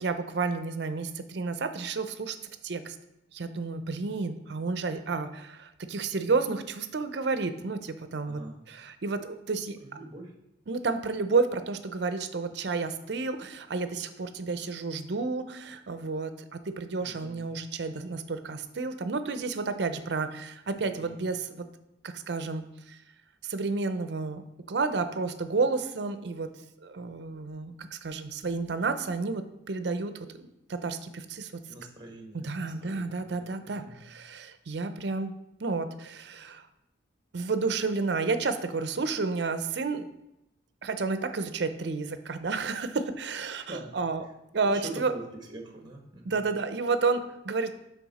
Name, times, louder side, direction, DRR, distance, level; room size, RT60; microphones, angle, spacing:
voice 1, 0.0-2.4 2.6-3.0 3.3-8.4 8.7-9.8 10.7-21.6 22.0-23.0 23.4-24.4 24.7-26.5 26.8-31.6 32.3-36.7 37.3-40.1 40.8-44.2 44.5-45.1 46.3-47.7, right 4 dB, 60° right, 10 dB, 0.5 m, -31 dB
voice 2, 8.3-8.6 9.8-10.3 17.0-17.5 20.7-21.2 31.6-34.0 43.7-43.9 44.5-45.2 45.5-46.4, right 2 dB, 25° right, 2 dB, 1.2 m, -44 dB
9.5 x 3.6 x 4.1 m, 0.86 s
head